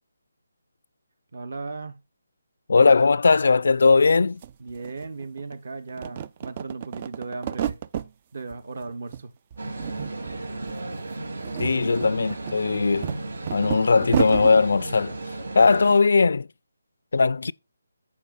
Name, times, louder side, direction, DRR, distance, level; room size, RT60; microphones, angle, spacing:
voice 1, 1.3-2.0 4.6-7.8 8.3-9.3 11.6-11.9, right 3 dB, 50° right, 1.0 m, -36 dB
voice 2, 2.7-4.4 11.6-13.1 13.5-15.2 15.5-16.5 17.1-17.5, left 4 dB, 60° left, 0.4 m, -19 dB
sound 1, 4.1-4.2 4.4-5.6 5.9-8.1 8.5-9.2 9.5-10.4 10.6-10.8 11.3-14.6, right 10 dB, 25° right, 0.3 m, -31 dB
sound 2, 9.6-16.0, right 2 dB, 80° right, 3.1 m, -35 dB
14.0 x 5.1 x 2.5 m
hypercardioid pair, 175°, 0 cm